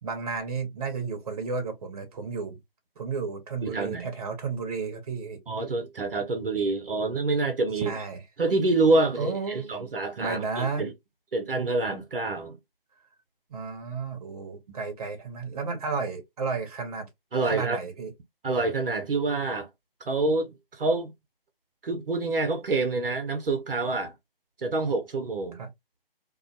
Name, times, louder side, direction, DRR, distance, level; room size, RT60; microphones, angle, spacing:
voice 1, 0.0-2.6 3.0-5.4 7.8-8.2 9.2-9.9 10.2-10.8 13.5-17.1 17.5-18.1 25.5-25.7, right 4 dB, 40° right, 0.8 m, -32 dB
voice 2, 3.6-4.1 5.5-7.9 8.4-10.9 11.3-12.6 17.3-17.8 18.4-19.7 20.0-21.1 21.8-24.1 24.6-25.6, right 3 dB, 70° right, 0.7 m, -27 dB
2.4 x 2.1 x 2.5 m
figure-of-eight pair, 145°, 29 cm